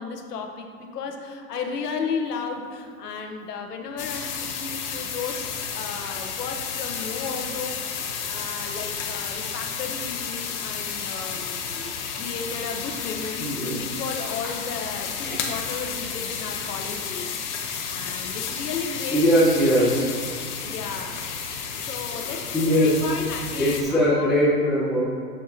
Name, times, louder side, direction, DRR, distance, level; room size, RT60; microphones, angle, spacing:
voice 1, 0.0-11.5 12.2-19.2 20.6-21.2 21.7-24.4, left 5 dB, 85° left, 3 dB, 1.0 m, -34 dB
sound 1, 4.0-23.8, left 6 dB, 50° left, 1.0 m, -32 dB
voice 2, 13.4-13.8 15.2-15.3 19.1-20.1 22.3-23.0 23.6-25.0, equal, ahead, -9 dB, 0.6 m, -21 dB
6.8 x 6.5 x 2.7 m, 2.3 s
hypercardioid pair, 150°, 46 cm